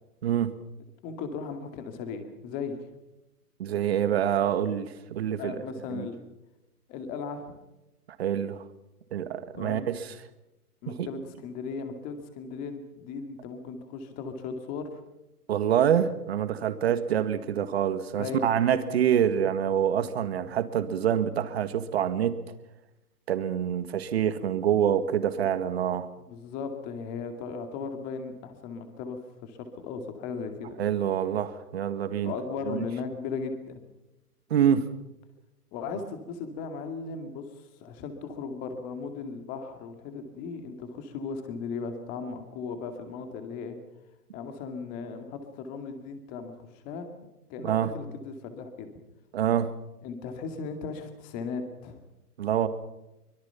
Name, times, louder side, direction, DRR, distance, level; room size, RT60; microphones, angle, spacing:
voice 1, 0.2-0.5 3.6-5.5 5.9-6.1 8.2-8.6 9.1-10.1 10.9-11.1 15.5-22.4 23.3-26.1 30.8-32.3 32.7-32.8 34.5-34.9 47.6-47.9 49.3-49.7 52.4-52.7, right 9 dB, 40° right, 11 dB, 1.9 m, -26 dB
voice 2, 1.0-2.8 5.4-6.2 6.9-7.5 9.5-9.9 10.8-15.0 18.1-18.6 26.2-30.8 32.2-33.8 35.7-43.8 44.3-47.1 47.5-48.9 50.0-52.0, left 5 dB, 15° left, 7 dB, 2.3 m, -37 dB
24.5 x 22.0 x 5.8 m, 0.94 s
hypercardioid pair, 160°, 47 cm